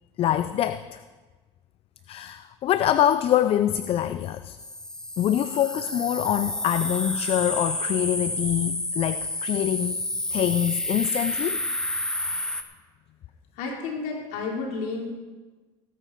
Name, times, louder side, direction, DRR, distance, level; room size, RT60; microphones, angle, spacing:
voice 1, 0.2-1.0 2.1-4.6 5.2-10.0 10.3-11.6, left 11 dB, 45° left, 12 dB, 0.5 m, -25 dB
sound 1, 4.6-12.6, left 1 dB, 5° left, 1.2 m, -30 dB
voice 2, 13.5-15.1, left 4 dB, 65° left, -1 dB, 3.4 m, -31 dB
17.5 x 9.2 x 4.7 m, 1.3 s
supercardioid pair, 100°, 14 cm